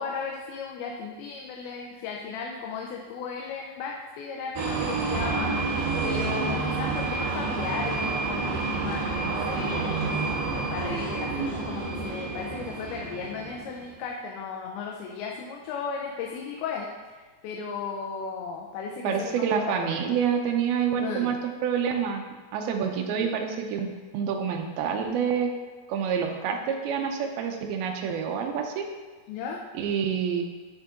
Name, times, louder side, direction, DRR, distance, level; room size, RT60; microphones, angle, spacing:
voice 1, 0.0-5.6 6.0-17.2 17.4-20.2 21.0-21.4 29.3-29.6, left 5 dB, 90° left, -1 dB, 2.6 m, -35 dB
sound 1, 4.6-13.9, right 3 dB, 70° right, 2.7 m, -29 dB
voice 2, 19.0-21.4 21.6-22.3 22.5-23.9 24.1-25.5 25.9-28.9 29.7-30.4, right 7 dB, 85° right, 3 dB, 2.6 m, -27 dB
11.0 x 3.8 x 3.6 m, 1.4 s
omnidirectional pair, 4.3 m